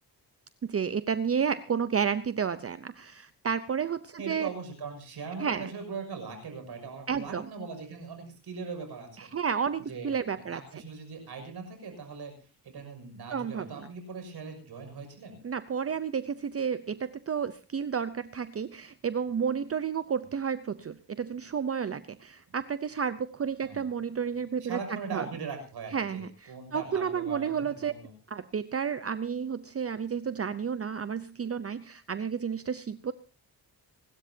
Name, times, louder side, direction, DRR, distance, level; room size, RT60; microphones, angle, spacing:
voice 1, 0.6-4.5 5.4-5.7 7.1-7.5 9.2-10.6 13.3-13.9 15.4-24.8 25.1-25.3 25.9-27.9 28.3-33.1, right 7 dB, 40° right, 13 dB, 0.7 m, -31 dB
voice 2, 4.2-9.3 9.9-15.4 23.6-23.9 24.6-28.1, right 5 dB, 85° right, 6 dB, 6.3 m, -40 dB
27.0 x 13.0 x 2.8 m, 0.35 s
cardioid pair, 95°, 38 cm